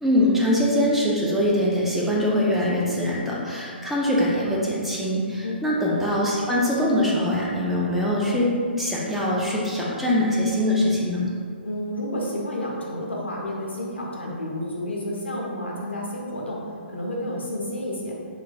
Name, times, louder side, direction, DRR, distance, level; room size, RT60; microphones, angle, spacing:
voice 1, 0.0-8.5 8.8-11.2, left 1 dB, 5° right, -6 dB, 0.4 m, -23 dB
voice 2, 11.6-18.1, left 1 dB, 85° left, -3 dB, 0.6 m, -30 dB
3.0 x 2.1 x 2.5 m, 2.1 s
figure-of-eight pair, 130°, 6 cm